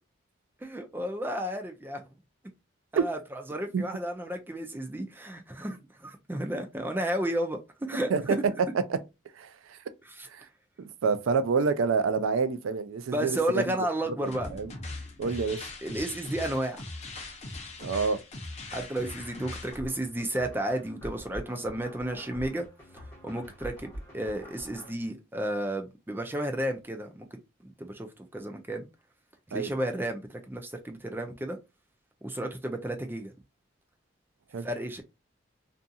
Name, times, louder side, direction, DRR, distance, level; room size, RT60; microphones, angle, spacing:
voice 1, 0.6-2.0 2.9-3.2 3.5-8.4 10.2-10.3 13.1-14.5 15.8-16.8 18.7-22.7 23.2-27.3 27.6-28.1 28.3-28.9 29.5-31.6 32.2-33.3 34.6-35.0, right 1 dB, 10° right, 0.4 m, -32 dB
voice 2, 8.1-9.0 9.3-9.8 10.3-10.5 10.8-13.6 14.1-14.7 15.2-15.7 17.8-18.2 29.5-29.7 34.5-34.7, right 5 dB, 85° right, 0.4 m, -28 dB
sound 1, 14.2-19.8, left 2 dB, 30° left, 0.6 m, -40 dB
sound 2, 19.7-24.9, equal, 15° left, 1.1 m, -45 dB
2.7 x 2.6 x 2.3 m
head